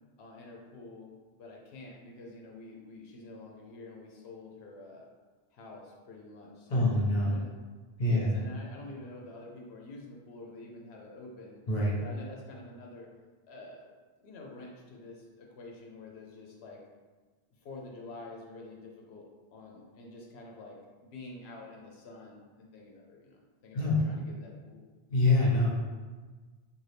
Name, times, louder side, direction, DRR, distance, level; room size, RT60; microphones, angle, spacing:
voice 1, 0.2-1.1 1.4-5.1 5.5-6.9 7.2-7.5 8.0-11.6 12.0-13.1 13.4-13.9 14.2-16.8 17.5-24.8, left 2 dB, 85° left, -1 dB, 0.8 m, -48 dB
voice 2, 6.7-7.4 8.0-8.4 11.7-12.0 23.7-24.0 25.1-25.7, left 2 dB, 45° left, -4 dB, 0.9 m, -25 dB
3.9 x 2.4 x 3.2 m, 1.4 s
omnidirectional pair, 1.0 m